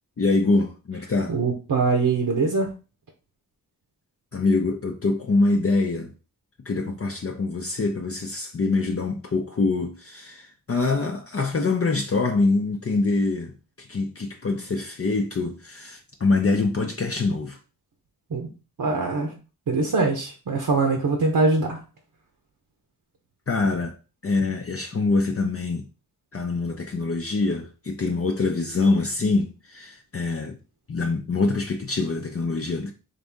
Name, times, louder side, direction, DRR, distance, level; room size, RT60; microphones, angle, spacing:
voice 1, 0.2-1.4 4.3-6.1 6.6-13.5 13.8-17.6 23.5-23.9 24.2-25.8 26.3-30.6 30.9-32.9, left 3 dB, 40° left, 0.6 m, -24 dB
voice 2, 1.3-2.7 18.3-18.5 18.8-19.3 19.7-21.8, right 3 dB, 75° right, 0.8 m, -23 dB
4.1 x 2.6 x 3.5 m
wide cardioid pair, 60°, 35 cm